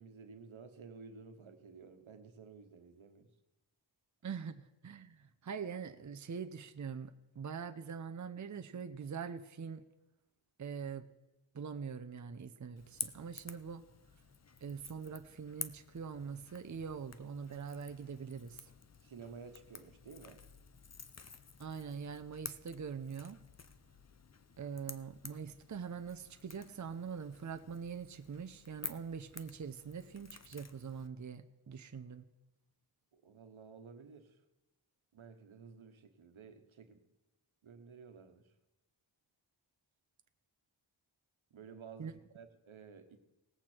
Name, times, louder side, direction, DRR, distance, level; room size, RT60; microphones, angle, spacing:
voice 1, 0.0-3.3 19.0-20.4 33.1-34.4 35.1-37.0 37.6-38.4 41.5-43.2, right 5 dB, 80° right, 7 dB, 1.3 m, -53 dB
voice 2, 4.2-9.8 10.6-11.1 11.5-13.8 14.6-18.6 21.6-23.4 24.6-32.3 42.0-42.1, right 6 dB, 40° right, 8 dB, 0.7 m, -43 dB
Crackle / Crack, 12.8-31.1, left 5 dB, 35° left, 0.7 m, -51 dB
19.0 x 8.1 x 4.5 m, 1.1 s
wide cardioid pair, 75°, 47 cm